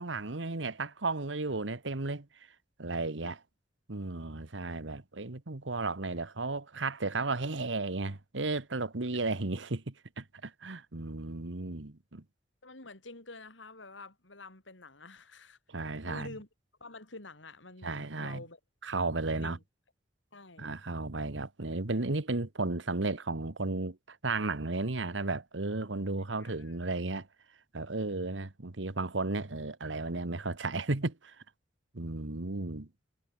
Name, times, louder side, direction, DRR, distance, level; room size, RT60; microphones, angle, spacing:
voice 1, 0.0-2.3 2.8-3.4 3.9-12.2 15.7-16.3 17.8-18.4 18.8-19.6 20.6-27.3 27.7-31.3 31.9-32.9, right 3 dB, 75° right, 1.5 m, -34 dB
voice 2, 12.6-16.5 16.8-18.6 19.3-19.6 20.3-20.8 26.4-26.9, left 2 dB, 80° left, 4.8 m, -49 dB
head